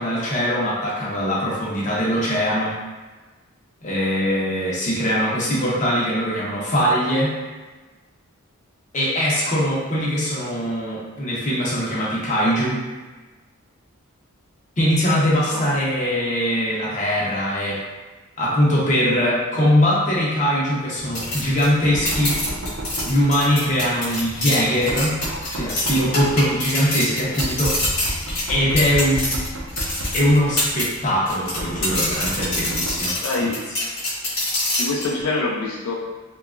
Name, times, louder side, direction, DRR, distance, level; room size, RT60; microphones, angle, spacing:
voice 1, 0.0-2.7 3.8-7.3 8.9-12.8 14.8-17.8 18.4-22.4 23.0-25.2 25.5-27.8 28.5-29.4 30.1-33.5, equal, 35° left, -6 dB, 0.6 m, -21 dB
Knock, 21.0-33.2, right 1 dB, 60° right, 0.5 m, -33 dB
sound 1, 21.1-30.9 31.3-35.1, left 1 dB, 55° left, 1.1 m, -26 dB
voice 2, 33.2-33.6 34.8-35.9, left 3 dB, 75° left, -1 dB, 0.3 m, -25 dB
2.8 x 2.2 x 2.4 m, 1.3 s
head